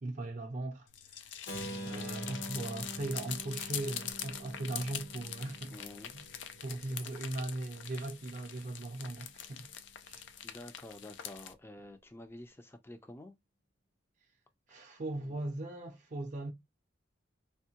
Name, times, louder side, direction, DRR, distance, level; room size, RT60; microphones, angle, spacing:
voice 1, 0.0-1.4 1.8-5.8 6.1-6.3 6.6-9.7 10.0-10.2 14.7-16.5, right 2 dB, 40° right, 0.5 m, -39 dB
sound 1, 0.9-11.5, left 9 dB, 80° left, 0.4 m, -44 dB
Keyboard (musical), 1.5-7.3, equal, 65° left, 0.9 m, -46 dB
sound 2, 1.5-10.9, right 1 dB, 90° right, 0.6 m, -54 dB
voice 2, 5.7-6.1 10.4-13.4 15.1-15.4, left 1 dB, 15° left, 0.4 m, -49 dB
3.4 x 2.1 x 2.8 m
head